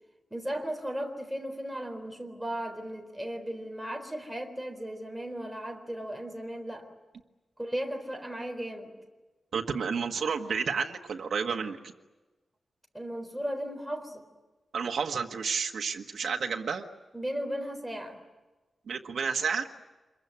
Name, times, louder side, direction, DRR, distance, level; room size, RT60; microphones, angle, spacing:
voice 1, 0.3-6.9 7.6-8.9 12.9-14.2 17.1-18.2, equal, 5° right, 3 dB, 4.0 m, -36 dB
voice 2, 9.5-11.8 14.7-16.8 18.9-19.7, right 5 dB, 75° right, 2 dB, 1.5 m, -31 dB
27.0 x 23.0 x 9.6 m, 1.2 s
wide cardioid pair, 175°, 0 cm